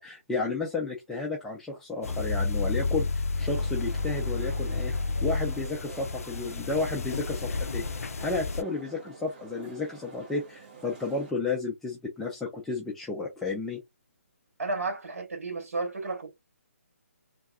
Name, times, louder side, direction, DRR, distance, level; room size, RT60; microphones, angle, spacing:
voice 1, 0.0-4.9 5.2-7.8 8.2-13.8, left 3 dB, 5° left, 0.4 m, -32 dB
sound 1, 2.0-8.6, left 3 dB, 75° left, 0.3 m, -31 dB
sound 2, 3.3-11.3, right 4 dB, 35° right, 1.2 m, -48 dB
voice 2, 14.6-16.3, right 3 dB, 75° right, 1.5 m, -32 dB
3.3 x 2.3 x 2.3 m
hypercardioid pair, 150°, 8 cm